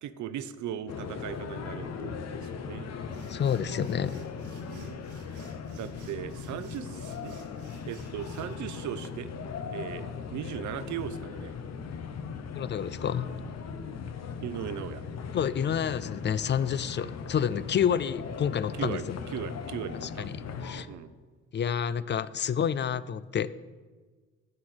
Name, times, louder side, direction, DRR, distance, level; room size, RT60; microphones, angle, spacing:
voice 1, 0.0-2.9 4.7-7.4 7.9-9.3 9.7-11.5 14.4-15.0 18.7-20.3 20.9-21.1, right 9 dB, 70° right, 13 dB, 0.7 m, -38 dB
sound 1, 0.9-20.8, left 6 dB, 60° left, 0.9 m, -39 dB
sound 2, 3.0-8.6, right 6 dB, 90° right, 1.9 m, -58 dB
voice 2, 3.3-4.3 12.5-13.3 15.3-19.2 20.0-20.3 20.6-20.9 21.5-23.5, left 8 dB, 35° left, 17 dB, 0.4 m, -29 dB
11.0 x 4.8 x 7.8 m, 1.4 s
cardioid pair, 90°, 30 cm